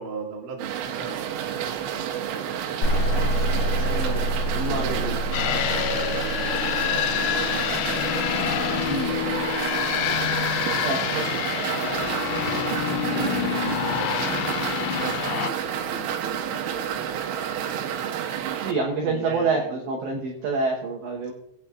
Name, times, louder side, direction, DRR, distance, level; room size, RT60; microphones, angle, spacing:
voice 1, 0.0-4.2 4.6-8.3 8.8-12.2 13.0-14.7 15.0-17.9 18.5-19.8, right 4 dB, 50° right, -2 dB, 3.0 m, -40 dB
sound 1, 0.6-18.7, right 9 dB, 90° right, 3.5 m, -30 dB
sound 2, 2.8-10.4, right 1 dB, 45° left, 2.8 m, -28 dB
voice 2, 3.8-4.2 4.5-5.2 8.9-9.1 10.8-11.2 11.8-11.9 18.6-21.3, right 3 dB, 70° right, -2 dB, 3.1 m, -27 dB
sound 3, 5.3-15.5, left 11 dB, 90° left, 3.4 m, -27 dB
22.0 x 8.5 x 2.4 m, 0.81 s
omnidirectional pair, 6.0 m